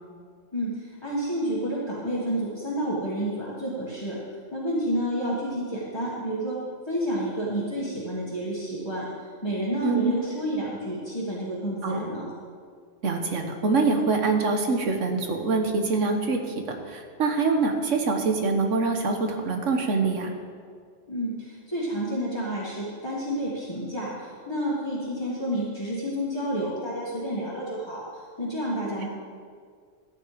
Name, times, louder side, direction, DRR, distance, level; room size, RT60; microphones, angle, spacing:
voice 1, 0.5-4.2 4.5-6.6 6.9-12.2 21.1-29.1, equal, 20° left, -7 dB, 1.8 m, -30 dB
voice 2, 9.8-10.2 11.8-12.0 13.0-20.3, right 4 dB, 80° right, 4 dB, 1.5 m, -25 dB
13.5 x 8.9 x 5.0 m, 2.1 s
omnidirectional pair, 1.3 m